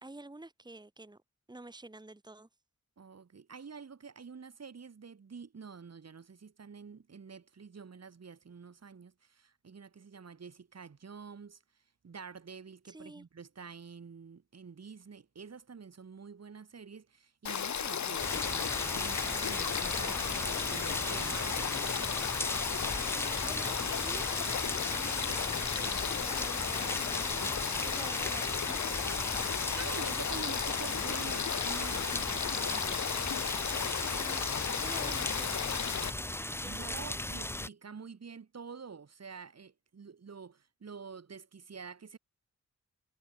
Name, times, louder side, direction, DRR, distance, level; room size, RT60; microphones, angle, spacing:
voice 1, 0.0-1.2 1.5-2.5 12.9-13.3 23.0-23.8 24.0-28.9 34.0-36.0 36.6-37.0, right 2 dB, 15° right, 2.4 m, -49 dB
voice 2, 3.0-11.6 12.0-22.0 29.8-33.1 36.7-42.2, right 5 dB, 60° right, 4.2 m, -47 dB
Frog / Stream, 17.5-36.1, left 8 dB, 75° left, 1.2 m, -34 dB
sound 1, 18.2-37.7, left 1 dB, 10° left, 0.9 m, -37 dB
wide cardioid pair, 160°, 29 cm